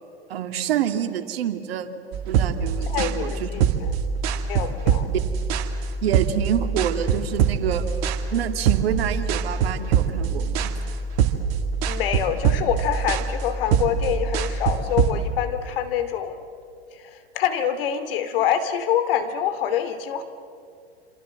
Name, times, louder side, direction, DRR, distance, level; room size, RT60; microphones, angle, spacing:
voice 1, 0.3-3.7 5.1-5.3 6.0-7.8 8.3-10.7, right 9 dB, 65° right, 7 dB, 2.3 m, -27 dB
sound 1, 2.1-15.1, right 7 dB, 45° right, 2.4 m, -24 dB
voice 2, 2.9-4.0 4.3-5.1 11.8-16.4 17.0-20.2, left 9 dB, 55° left, 10 dB, 2.6 m, -26 dB
27.0 x 27.0 x 7.7 m, 2.4 s
hypercardioid pair, 115°, 33 cm